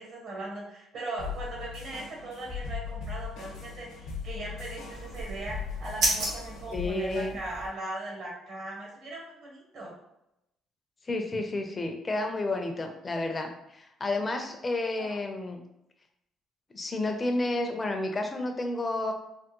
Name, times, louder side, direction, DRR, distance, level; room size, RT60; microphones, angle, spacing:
voice 1, 0.0-9.9 15.1-15.2, right 2 dB, 60° right, -2 dB, 1.0 m, -39 dB
sound 1, 1.2-6.9, left 6 dB, 85° left, 0.8 m, -39 dB
sound 2, 4.9-7.7, right 1 dB, 80° right, 1.4 m, -33 dB
voice 2, 6.7-7.4 11.0-15.6 16.7-19.1, left 2 dB, 25° left, 4 dB, 0.4 m, -31 dB
3.4 x 2.1 x 2.9 m, 0.85 s
cardioid pair, 120°, 0 cm